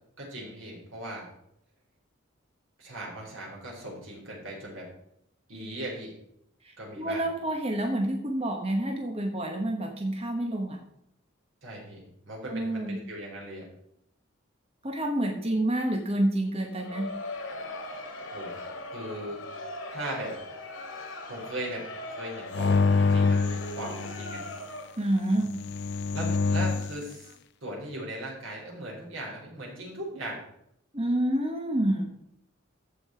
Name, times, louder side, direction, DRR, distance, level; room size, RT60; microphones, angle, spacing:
voice 1, 0.2-1.3 2.8-4.9 5.5-6.1 6.8-7.3 11.6-13.7 18.3-18.5 18.9-20.3 21.3-24.4 26.1-27.3 27.6-30.4, right 1 dB, 85° right, -2 dB, 4.3 m, -38 dB
voice 2, 7.0-10.8 12.5-13.0 14.8-17.1 25.0-25.6 30.9-32.1, right 1 dB, 30° right, 2 dB, 1.2 m, -28 dB
Crowd, 16.6-25.1, left 2 dB, 80° left, 2.1 m, -40 dB
sound 1, 22.5-24.5 25.5-27.0, left 4 dB, 60° left, 0.4 m, -26 dB
14.5 x 5.6 x 4.5 m, 0.75 s
head